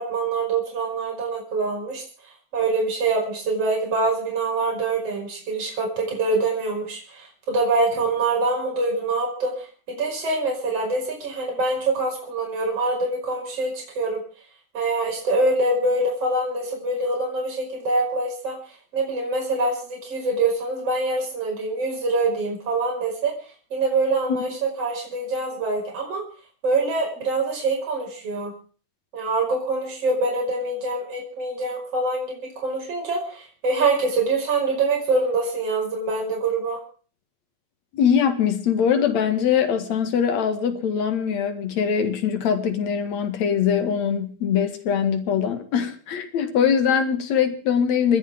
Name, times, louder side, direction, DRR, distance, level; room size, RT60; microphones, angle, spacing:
voice 1, 0.0-2.0 2.5-14.2 14.7-18.6 18.9-23.3 23.7-26.2 26.6-28.5 29.1-36.8, right 3 dB, 50° right, 6.3 m, -25 dB
voice 2, 37.9-48.2, left 7 dB, 65° left, 3.1 m, -22 dB
30.0 x 10.5 x 3.6 m
omnidirectional pair, 3.5 m